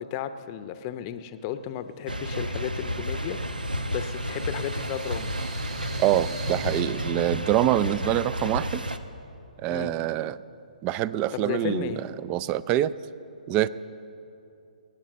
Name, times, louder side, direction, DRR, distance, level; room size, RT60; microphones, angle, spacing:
voice 1, 0.0-5.3 9.7-9.9 11.3-12.0, left 10 dB, 30° left, 11 dB, 0.7 m, -34 dB
sound 1, 1.4-1.5 1.9-6.8, right 4 dB, 45° right, 2.8 m, -42 dB
sound 2, 2.1-9.0, equal, 85° right, 0.9 m, -31 dB
voice 2, 6.0-8.9 9.6-10.4 10.8-12.9 13.5-13.7, right 13 dB, 25° right, 18 dB, 0.4 m, -25 dB
19.5 x 9.0 x 7.5 m, 2.7 s
figure-of-eight pair, 130°, 5 cm